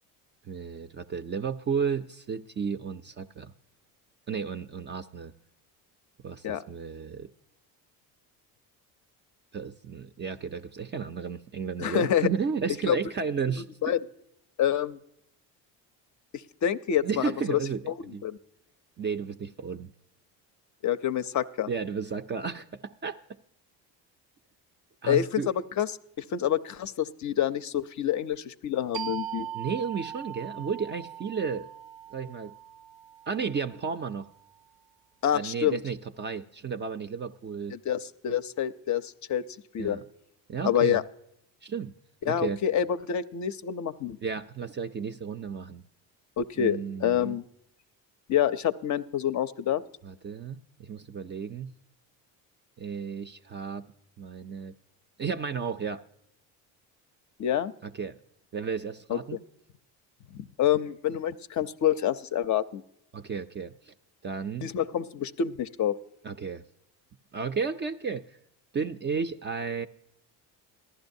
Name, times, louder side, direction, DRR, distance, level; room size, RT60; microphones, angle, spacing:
voice 1, 0.5-3.5 4.3-5.3 6.2-7.3 9.5-13.6 17.0-18.2 19.0-19.9 21.7-23.2 25.0-25.5 29.5-31.7 32.1-32.5 33.3-34.3 35.3-37.7 39.8-40.0 40.5-41.0 41.6-41.9 42.2-42.6 44.2-45.8 46.6-47.4 50.0-51.7 52.8-53.9 54.2-54.7 55.2-56.0 57.8-58.2 58.5-59.4 63.1-63.9 64.2-64.7 66.2-66.6 67.3-68.3 68.7-69.9, right 6 dB, 30° right, 7 dB, 0.4 m, -33 dB
voice 2, 11.8-12.3 12.9-13.0 13.8-14.0 14.6-15.0 16.6-17.6 17.9-18.4 20.8-21.7 25.1-25.4 25.8-25.9 26.2-29.5 35.2-35.8 37.7-39.4 39.7-40.0 40.6-41.0 42.3-44.2 46.4-47.4 48.3-49.8 57.4-57.7 59.1-59.2 60.6-62.8 64.6-65.9, left 10 dB, 45° left, 11 dB, 0.5 m, -27 dB
sound 1, 28.9-34.2, right 10 dB, 85° right, 0.6 m, -40 dB
14.5 x 11.5 x 2.6 m, 0.76 s
supercardioid pair, 85°, 42 cm